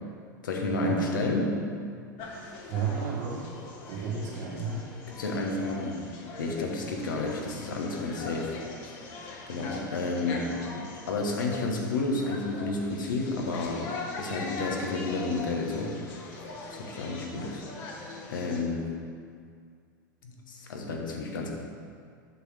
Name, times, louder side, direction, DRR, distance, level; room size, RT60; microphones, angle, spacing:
voice 1, 0.4-1.6 5.1-6.0 6.4-8.6 9.5-10.8 11.1-13.8 14.2-16.0 16.7-17.6 18.3-18.9 20.2-21.5, left 2 dB, 80° left, 0 dB, 1.2 m, -31 dB
sound 1, 2.2-18.6, left 3 dB, 50° left, 1.4 m, -42 dB
voice 2, 2.7-3.5 3.9-4.9, right 5 dB, 65° right, -3 dB, 1.8 m, -32 dB
8.0 x 6.4 x 3.5 m, 2.2 s
hypercardioid pair, 90°, 11 cm